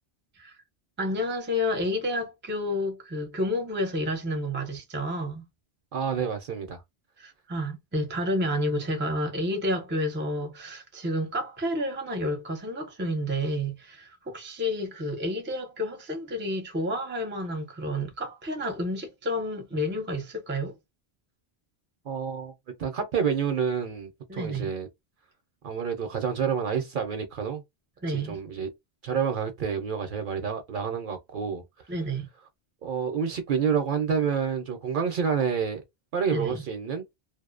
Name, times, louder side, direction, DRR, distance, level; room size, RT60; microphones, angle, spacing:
voice 1, 1.0-5.5 7.2-20.8 24.3-24.7 28.0-28.4 31.9-32.3 36.3-36.6, equal, 15° right, 0.5 m, -30 dB
voice 2, 5.9-6.8 22.1-22.5 22.8-24.9 25.6-27.6 28.1-28.7 29.0-31.6 32.8-35.8 36.1-37.0, right 7 dB, 60° right, 0.6 m, -28 dB
2.5 x 2.0 x 2.4 m
omnidirectional pair, 1.1 m